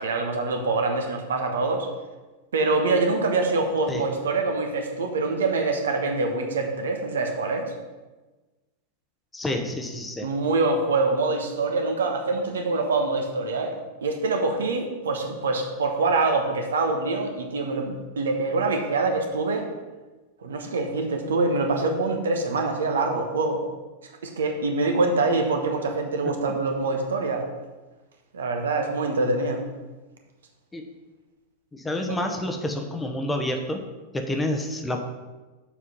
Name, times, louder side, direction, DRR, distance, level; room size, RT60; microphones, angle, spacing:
voice 1, 0.0-1.9 2.5-7.7 10.2-13.7 14.0-19.7 20.4-23.6 24.2-27.5 28.3-29.6, right 3 dB, 65° right, 4 dB, 1.1 m, -25 dB
voice 2, 9.3-10.3 26.2-26.4 30.7-30.9 31.7-33.8 34.1-35.0, left 1 dB, 10° left, 4 dB, 0.9 m, -29 dB
7.2 x 4.8 x 5.6 m, 1.2 s
figure-of-eight pair, 90°, 0 cm